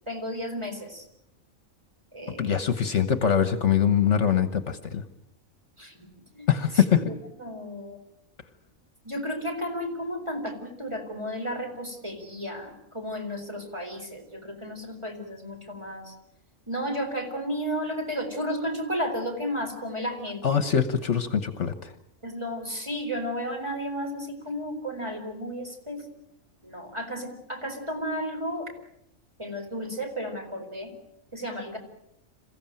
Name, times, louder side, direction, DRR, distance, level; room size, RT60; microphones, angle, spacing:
voice 1, 0.1-1.1 2.1-2.6 5.8-6.1 6.3-6.5 6.7-8.0 9.0-16.1 16.7-20.6 22.2-26.1 26.6-28.7 29.4-30.9 31.3-31.8, equal, 20° right, 2 dB, 4.4 m, -33 dB
voice 2, 2.4-5.0 6.5-7.0 20.4-21.9, left 8 dB, 60° left, 10 dB, 1.4 m, -23 dB
27.5 x 15.5 x 9.0 m, 0.85 s
omnidirectional pair, 1.4 m